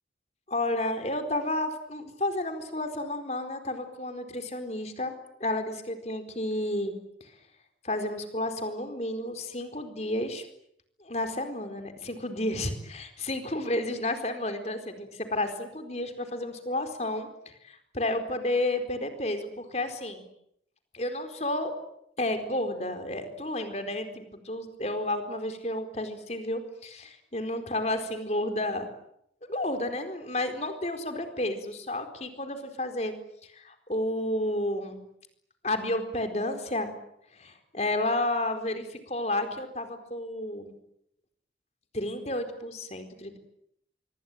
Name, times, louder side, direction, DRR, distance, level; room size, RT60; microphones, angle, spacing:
voice 1, 0.5-5.1 5.4-6.9 7.2-7.3 7.8-10.5 11.0-17.3 17.6-20.3 20.9-21.7 22.2-28.9 29.4-33.2 33.4-35.0 35.6-36.9 37.3-40.7 41.9-43.4, left 1 dB, 35° left, 7 dB, 4.4 m, -31 dB
26.0 x 24.5 x 9.3 m, 0.73 s
head